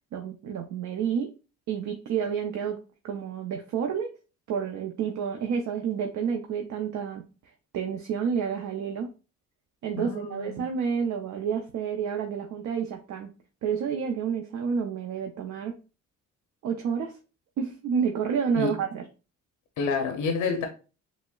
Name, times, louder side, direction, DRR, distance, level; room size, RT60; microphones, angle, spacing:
voice 1, 0.1-1.3 1.7-2.8 3.0-4.1 4.5-7.2 7.7-9.1 9.8-13.3 13.6-15.8 16.6-17.2 17.6-19.0, right 7 dB, 70° right, 0.6 m, -29 dB
voice 2, 10.0-10.6 18.5-18.8 19.8-20.7, left 5 dB, 80° left, 0.6 m, -28 dB
6.0 x 2.0 x 2.3 m
cardioid pair, 90°, 30 cm